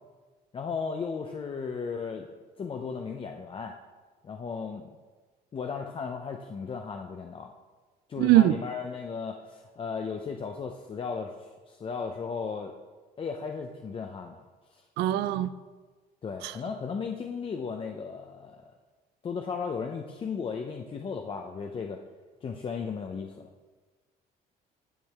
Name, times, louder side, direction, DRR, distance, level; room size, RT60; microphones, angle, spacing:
voice 1, 0.5-2.3 2.6-3.8 4.2-5.0 5.5-7.5 8.1-12.7 13.2-14.4 14.7-14.8 16.2-18.7 19.2-22.0 22.4-23.5, left 5 dB, 30° left, 3 dB, 0.6 m, -35 dB
voice 2, 8.2-8.6 15.0-15.5 16.4-16.5, right 14 dB, 80° right, 15 dB, 0.4 m, -22 dB
10.5 x 6.3 x 3.5 m, 1.3 s
cardioid pair, 110°, 17 cm